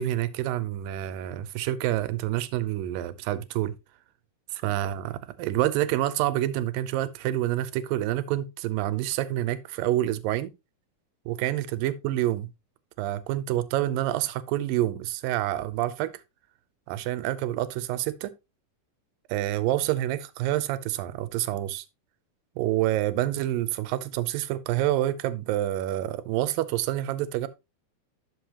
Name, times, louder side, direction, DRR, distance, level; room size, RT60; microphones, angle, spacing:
voice 1, 0.0-3.7 4.5-10.5 11.3-12.5 13.0-16.1 16.9-18.3 19.3-21.9 22.6-27.5, right 13 dB, 90° right, 2.4 m, -27 dB
12.0 x 5.4 x 2.8 m
omnidirectional pair, 3.9 m